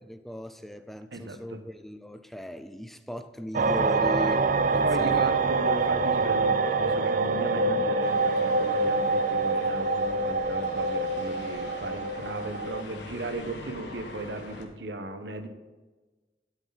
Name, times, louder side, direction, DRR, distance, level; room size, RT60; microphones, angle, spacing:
voice 1, 0.0-5.3, equal, ahead, 10 dB, 0.5 m, -38 dB
voice 2, 1.1-1.6 4.8-15.5, right 2 dB, 85° right, 8 dB, 1.1 m, -36 dB
sound 1, 3.5-12.8, right 3 dB, 50° right, 0.5 m, -25 dB
sound 2, 8.0-14.7, left 2 dB, 85° left, 1.5 m, -45 dB
11.0 x 8.4 x 4.0 m, 1.2 s
head